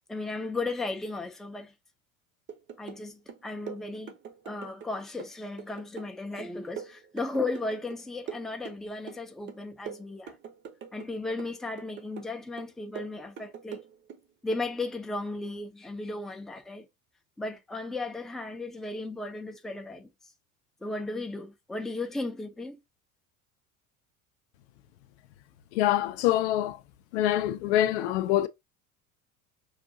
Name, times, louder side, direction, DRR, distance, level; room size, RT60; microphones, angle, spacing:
voice 1, 0.1-1.7 2.8-4.1 4.4-10.4 10.9-13.8 14.4-16.9 17.4-20.1 20.8-22.8, left 2 dB, ahead, 0.5 m, -35 dB
sound 1, 2.5-3.0 3.3-4.9 5.2-8.0 8.3-9.2 9.5-11.1 11.4-12.3 12.6-14.2 14.5-14.7, right 7 dB, 25° right, 0.8 m, -43 dB
voice 2, 25.7-26.8 27.1-28.5, left 13 dB, 50° left, 0.5 m, -25 dB
5.6 x 2.5 x 2.6 m
figure-of-eight pair, 65°, 43 cm